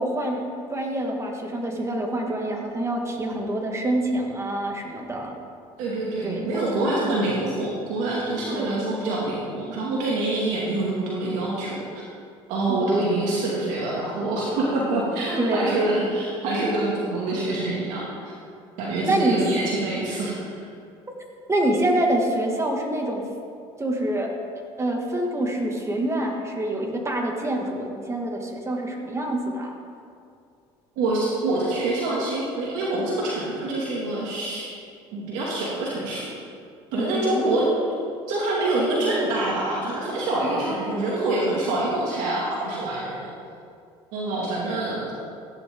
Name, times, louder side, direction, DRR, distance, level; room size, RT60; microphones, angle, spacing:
voice 1, 0.0-5.3 6.2-7.2 8.5-8.8 12.7-12.9 15.4-15.7 19.0-19.4 21.5-23.3 23.8-24.3 24.8-29.7 37.0-37.4 40.4-41.0, right 1 dB, 20° right, 1 dB, 2.2 m, -26 dB
voice 2, 5.8-11.8 12.5-18.3 18.8-20.6 31.0-34.7 35.1-36.3 36.9-37.7 38.3-43.3 44.1-45.1, right 2 dB, 75° right, -5 dB, 2.4 m, -26 dB
15.5 x 10.5 x 3.8 m, 2.4 s
supercardioid pair, 80°, 13 cm